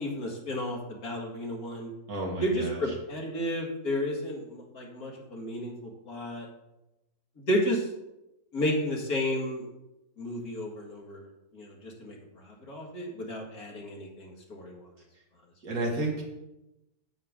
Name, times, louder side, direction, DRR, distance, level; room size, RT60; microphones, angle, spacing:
voice 1, 0.0-1.9 2.4-6.5 7.5-7.9 8.5-9.7 10.2-14.8, left 1 dB, 70° left, -1 dB, 2.4 m, -32 dB
voice 2, 2.1-2.8 15.6-16.2, right 2 dB, 70° right, -1 dB, 2.4 m, -31 dB
9.1 x 8.6 x 3.7 m, 0.94 s
omnidirectional pair, 1.6 m